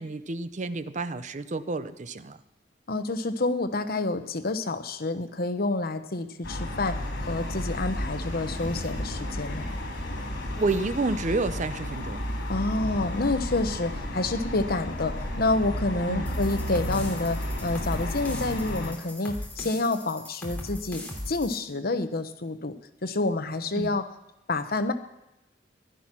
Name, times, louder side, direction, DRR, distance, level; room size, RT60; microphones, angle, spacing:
voice 1, 0.0-2.4 10.6-12.3 16.1-16.2 23.8-24.0, right 3 dB, 40° right, 13 dB, 0.6 m, -29 dB
voice 2, 2.9-9.7 12.5-22.7 23.0-24.0 24.5-24.9, left 2 dB, 55° left, 9 dB, 1.0 m, -28 dB
sound 1, 6.4-18.9, left 1 dB, 70° left, 3.3 m, -32 dB
sound 2, 16.3-21.6, left 1 dB, 10° left, 3.0 m, -38 dB
15.5 x 11.5 x 6.0 m, 0.90 s
head